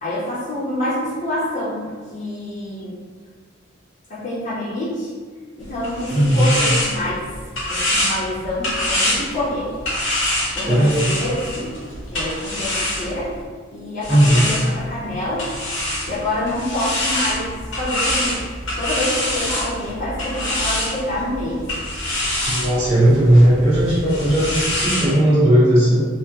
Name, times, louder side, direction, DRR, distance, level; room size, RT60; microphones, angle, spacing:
voice 1, 0.0-3.0 4.1-5.1 5.6-7.2 7.7-9.7 10.6-11.8 12.1-13.4 13.7-15.5 16.1-18.4 18.8-21.6, left 1 dB, 40° left, -10 dB, 0.7 m, -27 dB
sound 1, 5.6-13.4 14.0-25.1, left 1 dB, 85° left, 1.1 m, -25 dB
voice 2, 6.1-6.5 10.7-11.0 14.1-14.5 22.4-26.0, right 1 dB, 30° right, -12 dB, 1.0 m, -16 dB
3.5 x 2.1 x 2.9 m, 1.5 s
head